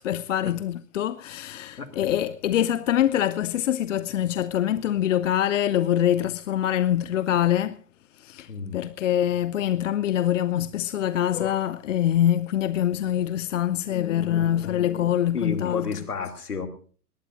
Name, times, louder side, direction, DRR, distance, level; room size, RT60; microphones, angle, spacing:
voice 1, 0.0-7.8 8.2-15.9, left 11 dB, 55° left, 0.7 m, -24 dB
voice 2, 8.5-8.8 15.3-16.7, left 5 dB, 75° left, 2.8 m, -31 dB
21.0 x 18.5 x 2.5 m
figure-of-eight pair, 110°, 46 cm